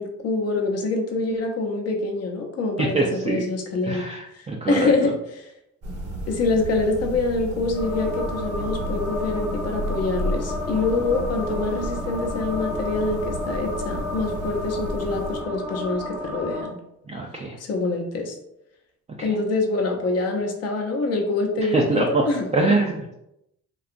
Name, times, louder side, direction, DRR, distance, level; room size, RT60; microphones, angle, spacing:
voice 1, 0.0-4.1 4.3-5.5 6.3-16.8 17.6-18.3 19.2-22.7, left 3 dB, 55° left, 2 dB, 0.7 m, -25 dB
voice 2, 2.8-3.4 3.8-4.9 17.1-17.6 19.2-19.4 21.6-22.3 22.5-23.1, right 3 dB, 25° right, -1 dB, 0.3 m, -24 dB
sound 1, 5.8-15.4, right 1 dB, 55° right, 0.8 m, -32 dB
sound 2, 7.7-16.7, left 2 dB, 5° right, 0.7 m, -32 dB
2.7 x 2.3 x 2.5 m, 0.82 s
cardioid pair, 90°, 30 cm